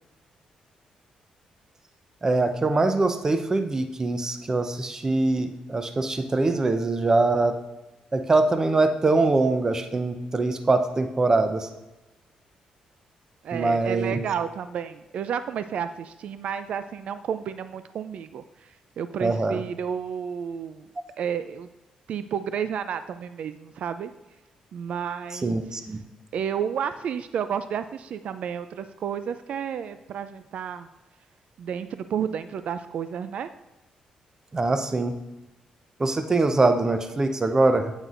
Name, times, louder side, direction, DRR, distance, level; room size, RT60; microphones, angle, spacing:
voice 1, 2.2-7.5 8.1-11.7 13.5-14.2 19.2-19.6 25.4-26.0 34.5-35.1 36.0-37.9, right 3 dB, 25° right, 7 dB, 0.7 m, -23 dB
voice 2, 13.4-18.4 19.0-20.9 21.2-21.7 22.1-24.1 24.7-25.6 26.3-30.9 31.6-33.5, right 8 dB, 65° right, 11 dB, 0.4 m, -31 dB
9.0 x 8.1 x 2.5 m, 1.0 s
cardioid pair, 85°, 2 cm